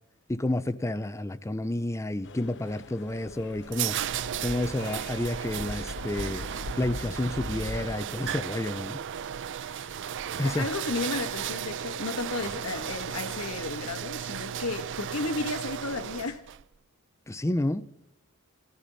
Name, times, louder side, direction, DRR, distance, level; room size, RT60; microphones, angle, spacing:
voice 1, 0.3-4.0 4.4-6.5 6.7-9.0 10.4-10.7 17.3-17.8, left 1 dB, 15° left, 0.5 m, -30 dB
sound 1, 2.2-8.0, left 3 dB, 55° left, 0.7 m, -41 dB
sound 2, 3.1-16.6, right 9 dB, 55° right, 0.5 m, -35 dB
voice 2, 9.6-9.9 10.4-16.5, left 3 dB, 80° left, 1.5 m, -33 dB
20.5 x 13.5 x 4.0 m
head